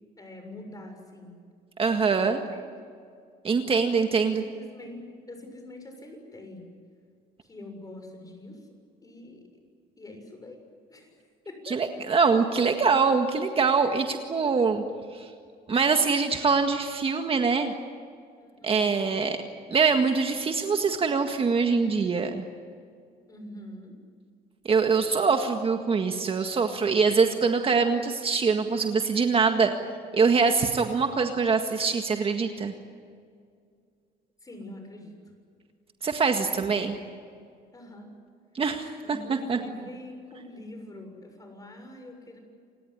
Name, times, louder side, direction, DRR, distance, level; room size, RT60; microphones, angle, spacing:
voice 1, 0.2-1.4 2.3-2.6 4.3-6.6 7.4-8.6 9.0-9.4 10.0-10.6 10.9-11.1 11.4-11.8 18.4-19.0 23.3-24.0 34.4-35.1 36.3-36.8 37.7-38.1 39.0-42.4, left 1 dB, 20° left, 5 dB, 6.8 m, -44 dB
voice 2, 1.8-2.4 3.4-4.4 11.7-14.8 15.1-15.3 15.7-17.7 18.6-19.4 19.7-22.4 24.7-29.7 30.1-32.7 36.0-37.0 38.5-39.6, right 5 dB, 35° right, 5 dB, 1.8 m, -24 dB
29.0 x 18.5 x 9.9 m, 2.2 s
cardioid pair, 110°, 17 cm